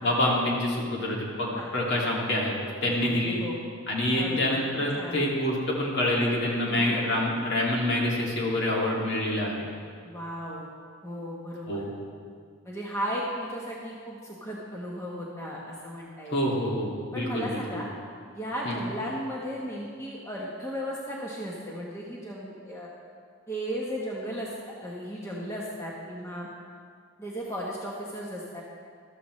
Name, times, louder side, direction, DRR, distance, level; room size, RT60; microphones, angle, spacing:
voice 1, 0.0-2.5 2.8-3.4 3.9-9.7 11.7-11.9 16.3-17.8 18.6-18.8, left 1 dB, 55° left, -3 dB, 2.3 m, -27 dB
voice 2, 2.6-3.6 4.2-5.3 6.6-7.0 10.0-10.7 11.0-11.9 12.6-16.4 17.1-17.9 18.3-22.9 23.5-24.5 24.8-26.5 27.2-28.6, equal, 15° left, -4 dB, 1.1 m, -35 dB
14.0 x 13.0 x 3.2 m, 2.1 s
head